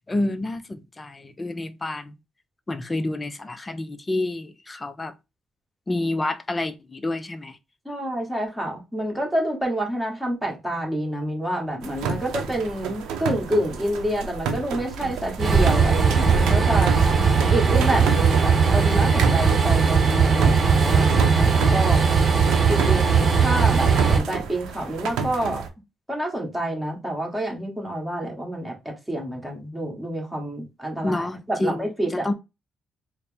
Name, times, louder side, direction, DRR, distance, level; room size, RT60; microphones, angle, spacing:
voice 1, 0.1-2.1 2.7-5.1 5.9-7.6 31.0-32.3, left 2 dB, 25° left, 0.5 m, -29 dB
voice 2, 7.8-16.9 17.5-22.0 22.7-25.6 26.1-32.3, right 1 dB, 10° right, 1.6 m, -28 dB
sound 1, 11.8-25.7, right 5 dB, 90° right, 0.6 m, -31 dB
Train, 15.4-24.2, right 5 dB, 40° right, 0.9 m, -19 dB
4.3 x 2.1 x 3.4 m
cardioid pair, 90°, 0 cm